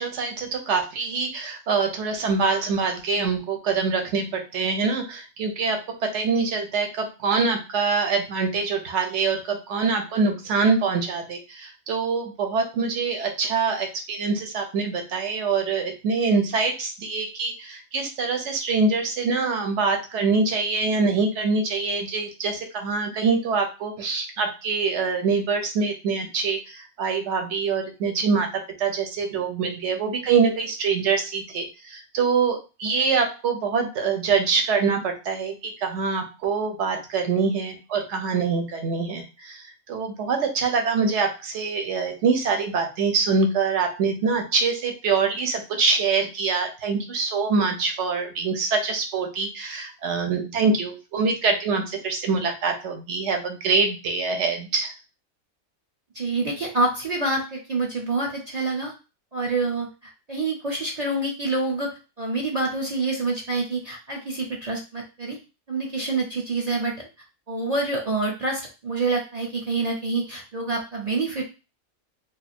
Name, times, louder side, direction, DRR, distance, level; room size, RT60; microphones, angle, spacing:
voice 1, 0.0-54.9, right 4 dB, 60° right, 4 dB, 1.0 m, -24 dB
voice 2, 56.1-58.9 59.3-65.4 65.7-67.1 67.5-71.5, right 3 dB, 40° right, -2 dB, 0.6 m, -27 dB
2.7 x 2.5 x 4.2 m, 0.30 s
omnidirectional pair, 1.5 m